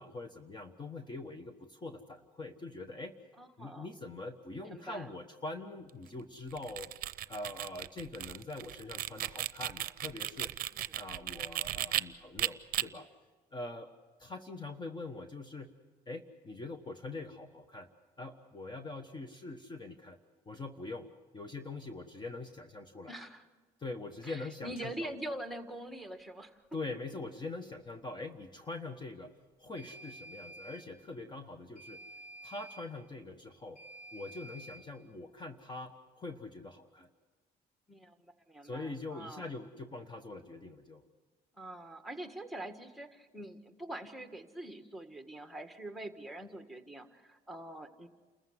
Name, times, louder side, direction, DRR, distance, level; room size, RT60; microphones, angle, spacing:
voice 1, 0.0-3.2 3.6-6.9 7.3-10.5 10.9-13.1 13.5-13.9 14.2-15.7 16.1-17.9 18.2-20.2 20.5-21.1 21.3-23.1 23.8-25.1 26.7-29.3 29.6-32.0 32.4-33.8 34.1-37.1 38.6-41.0, left 2 dB, 25° left, 8 dB, 1.2 m, -43 dB
voice 2, 3.4-3.9 4.7-5.1 10.9-11.0 23.1-23.5 24.2-26.6 37.9-39.5 41.5-48.1, right 1 dB, ahead, 6 dB, 1.7 m, -44 dB
sound 1, 6.5-12.0 12.4-12.8, right 13 dB, 60° right, 0.6 m, -35 dB
sound 2, 24.8-24.9 29.8-30.8 31.7-32.8 33.7-34.8, right 1 dB, 60° left, 6.2 m, -50 dB
28.5 x 14.5 x 8.0 m, 1.3 s
cardioid pair, 110°, 17 cm